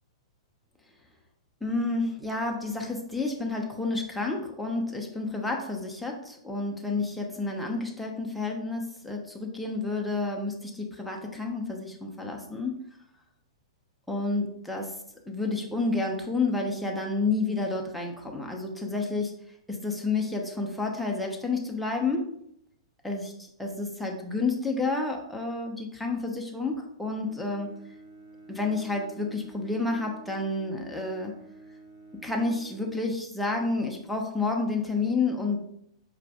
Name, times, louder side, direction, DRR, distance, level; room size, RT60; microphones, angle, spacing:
voice 1, 1.6-12.8 14.1-14.9 15.3-19.4 19.7-22.3 23.0-23.3 23.6-27.7 28.5-31.3 32.2-35.6, left 3 dB, ahead, -1 dB, 0.7 m, -30 dB
Bowed string instrument, 27.0-33.7, right 2 dB, 40° right, 1.4 m, -50 dB
4.9 x 2.5 x 3.5 m, 0.73 s
figure-of-eight pair, 110°, 3 cm